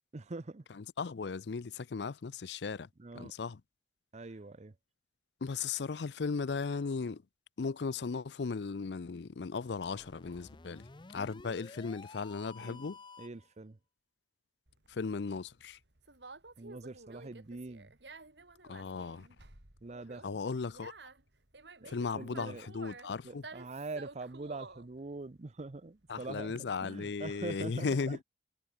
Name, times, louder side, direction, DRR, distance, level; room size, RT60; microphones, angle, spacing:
voice 1, 0.1-0.6 3.0-3.3 4.1-4.7 12.6-12.9 13.2-13.8 16.6-17.9 19.8-20.4 21.8-22.7 23.2-28.2, right 3 dB, 40° right, 0.7 m, -44 dB
voice 2, 0.7-2.9 3.2-3.6 5.4-7.2 7.6-10.9 11.1-13.0 14.9-15.8 18.7-19.3 20.2-20.9 21.9-23.5 26.1-28.2, left 4 dB, 70° left, 0.5 m, -36 dB
sound 1, 9.6-13.5, left 3 dB, 25° left, 0.8 m, -52 dB
Conversation, 14.7-26.6, right 3 dB, 70° right, 3.6 m, -52 dB
head